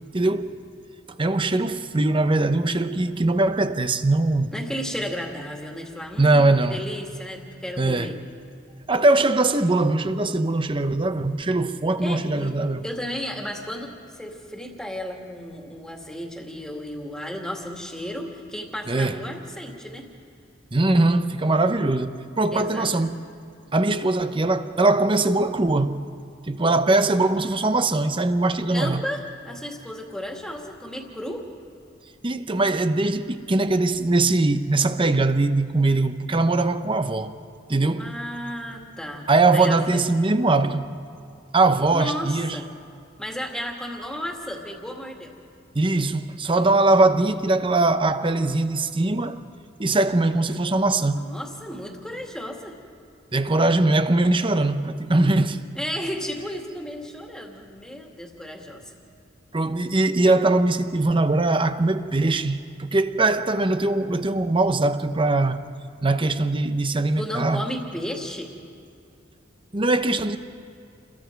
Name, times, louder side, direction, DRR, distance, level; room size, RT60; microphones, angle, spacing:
voice 1, 0.1-0.6 1.2-4.6 6.2-6.8 7.8-8.1 8.9-12.8 18.9-19.2 20.7-23.2 23.7-26.0 26.5-29.0 32.2-37.3 37.7-38.1 39.3-40.9 41.5-42.6 45.7-49.4 49.8-51.3 53.3-55.6 59.5-65.6 66.0-67.7 69.7-70.4, right 2 dB, 25° right, 0.8 m, -21 dB
voice 2, 4.5-8.2 12.0-12.5 12.8-13.9 14.2-20.1 22.5-23.1 28.7-31.5 38.0-40.0 41.9-42.7 43.2-45.4 51.1-52.8 55.7-58.9 67.2-68.5, equal, 5° left, 2.3 m, -34 dB
29.0 x 21.5 x 4.7 m
head